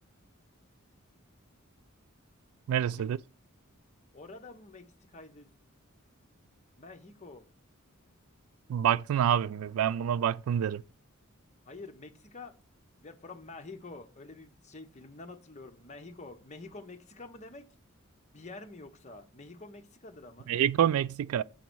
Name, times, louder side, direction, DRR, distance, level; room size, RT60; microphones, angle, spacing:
voice 1, 2.7-3.2 8.7-10.8 20.5-21.4, right 9 dB, 80° right, 0.3 m, -27 dB
voice 2, 4.1-5.6 6.8-7.4 11.6-12.5 13.0-17.7 18.3-20.5, left 3 dB, 35° left, 0.9 m, -48 dB
7.1 x 3.9 x 6.1 m
head